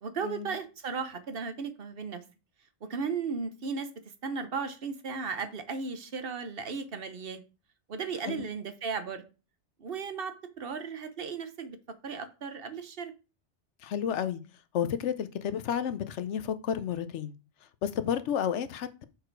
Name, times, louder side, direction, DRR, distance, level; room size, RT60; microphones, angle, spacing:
voice 1, 0.0-2.2 2.8-3.9 4.2-7.4 7.9-9.2 9.8-11.8 12.0-13.1, right 5 dB, 55° right, 1.1 m, -35 dB
voice 2, 13.8-14.4 14.7-17.3 17.8-19.0, left 8 dB, 90° left, 1.0 m, -31 dB
6.7 x 4.9 x 4.5 m
omnidirectional pair, 1.2 m